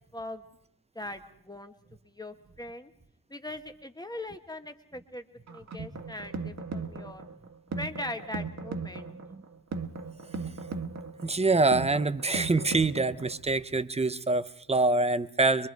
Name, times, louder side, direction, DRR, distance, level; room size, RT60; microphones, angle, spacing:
voice 1, 0.1-0.4 0.9-1.7 2.0-2.9 3.3-7.2 7.8-9.2, left 1 dB, 10° left, 7 dB, 1.1 m, -40 dB
sound 1, 5.5-13.5, right 4 dB, 45° right, 1.7 m, -38 dB
voice 2, 9.1-9.4 10.5-15.7, right 3 dB, 15° right, 13 dB, 0.7 m, -26 dB
24.0 x 24.0 x 4.7 m, 0.74 s
wide cardioid pair, 150°, 38 cm